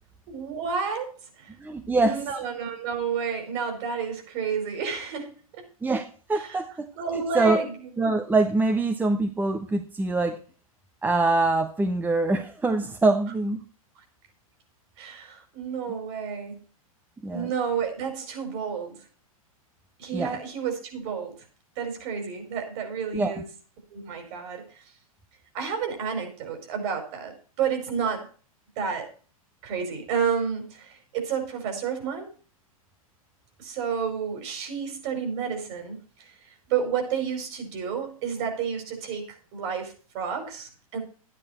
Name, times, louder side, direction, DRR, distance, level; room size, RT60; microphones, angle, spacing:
voice 1, 0.3-1.5 2.0-5.3 5.6-5.7 6.3-6.6 7.0-7.7 13.9-14.0 15.0-16.5 17.3-19.0 20.0-21.3 21.8-23.5 23.9-24.8 25.5-28.3 28.8-29.1 29.6-32.3 33.6-36.3 36.7-41.0, right 6 dB, 50° right, 5 dB, 5.2 m, -30 dB
voice 2, 1.6-2.2 5.8-7.6 8.0-10.4 11.0-13.6 17.2-17.5 20.1-20.4 23.1-23.4, right 2 dB, 10° right, 7 dB, 1.1 m, -24 dB
12.0 x 10.0 x 4.4 m, 0.39 s
hypercardioid pair, 115°, 19 cm